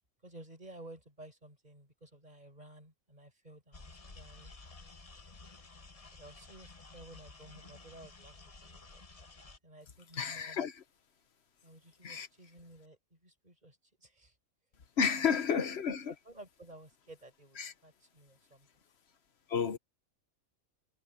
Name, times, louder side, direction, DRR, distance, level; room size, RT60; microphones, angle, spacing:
voice 1, 0.2-4.5 6.1-9.0 9.6-10.6 11.6-14.4 15.1-15.6 16.1-18.8, right 1 dB, 30° right, 6.7 m, -54 dB
sound 1, 3.7-9.6, left 3 dB, 30° left, 1.2 m, -53 dB
voice 2, 10.1-10.8 12.0-12.3 15.0-16.1 17.6-17.7 19.5-19.8, left 6 dB, 50° left, 1.3 m, -31 dB
omnidirectional pair, 1.4 m